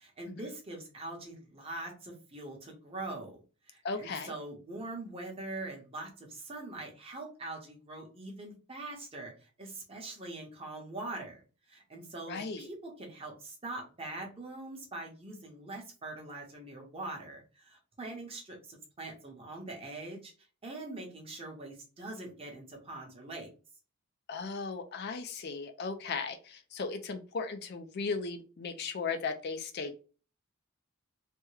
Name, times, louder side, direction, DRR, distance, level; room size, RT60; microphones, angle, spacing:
voice 1, 0.0-3.4 3.7-11.4 11.7-20.3 20.6-23.5, right 2 dB, 25° right, 0 dB, 0.9 m, -43 dB
voice 2, 3.8-4.3 12.3-12.7 24.3-30.0, left 4 dB, 45° left, 7 dB, 0.4 m, -36 dB
3.4 x 2.1 x 3.1 m, 0.35 s
head